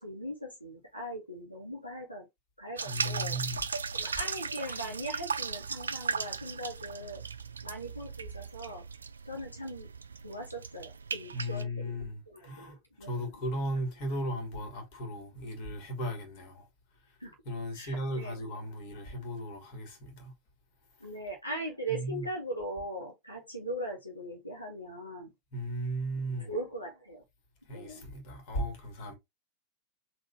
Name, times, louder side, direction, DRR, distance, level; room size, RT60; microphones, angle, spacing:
voice 1, 0.0-2.3 2.6-3.4 3.9-7.2 7.6-8.8 9.2-9.9 10.2-11.9 12.3-13.2 17.2-17.3 17.7-18.4 21.0-25.3 26.4-27.2 27.7-28.0, right 1 dB, 90° left, 1.4 m, -40 dB
sound 1, 2.8-11.6, right 5 dB, 75° right, 0.3 m, -37 dB
voice 2, 2.9-3.6 4.0-4.1 11.3-16.7 17.5-20.3 21.9-22.2 25.5-26.5 27.7-29.1, equal, 45° left, 2.0 m, -36 dB
4.0 x 2.9 x 4.0 m
figure-of-eight pair, 90°, 0 cm